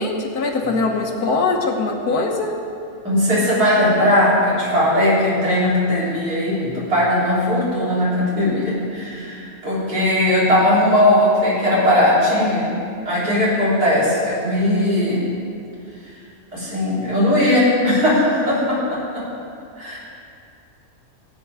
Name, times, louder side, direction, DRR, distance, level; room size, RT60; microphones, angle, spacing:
voice 1, 0.0-2.6, left 3 dB, 85° left, 2 dB, 1.8 m, -22 dB
voice 2, 3.0-12.7 13.0-15.3 16.5-19.2 19.8-20.0, left 1 dB, 80° right, -8 dB, 4.3 m, -18 dB
16.5 x 8.8 x 4.9 m, 2.5 s
omnidirectional pair, 1.6 m